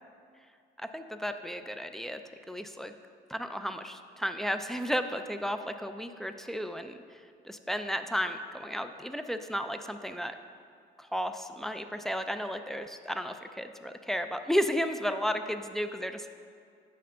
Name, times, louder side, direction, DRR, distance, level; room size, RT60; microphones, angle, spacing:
voice 1, 0.8-2.2 2.5-2.9 3.3-7.0 7.4-10.4 11.0-16.3, equal, ahead, 7 dB, 0.3 m, -33 dB
8.5 x 5.7 x 3.7 m, 2.3 s
cardioid pair, 110°, 17 cm